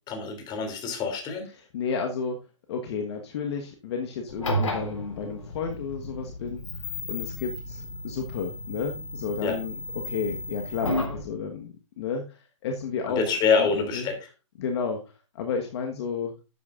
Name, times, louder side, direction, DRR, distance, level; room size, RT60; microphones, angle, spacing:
voice 1, 0.1-1.5 9.4-9.6 13.1-14.2, left 5 dB, 25° left, 5 dB, 2.9 m, -26 dB
voice 2, 1.7-2.4 2.7-6.6 7.1-9.7 10.0-13.2 13.6-14.1 14.6-15.0 15.4-16.3, left 5 dB, 55° left, 3 dB, 1.4 m, -32 dB
sound 1, 4.3-11.2, left 1 dB, 85° left, 3.9 m, -33 dB
12.0 x 8.3 x 2.5 m, 0.31 s
hypercardioid pair, 125°, 16 cm